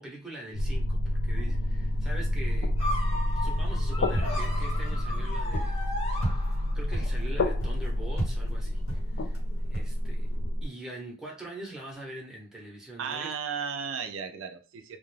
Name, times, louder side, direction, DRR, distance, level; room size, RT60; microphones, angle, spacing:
voice 1, 0.0-2.7 3.2-5.9 6.7-9.4 9.7-10.3 10.6-13.3, right 1 dB, ahead, 0.7 m, -43 dB
sound 1, 0.5-10.7, left 1 dB, 55° left, 0.3 m, -29 dB
sound 2, 2.8-6.9, left 1 dB, 30° left, 0.8 m, -36 dB
sound 3, 3.6-10.3, right 1 dB, 80° left, 1.0 m, -39 dB
voice 2, 13.0-15.0, right 6 dB, 75° right, 0.4 m, -34 dB
2.3 x 2.1 x 3.1 m
head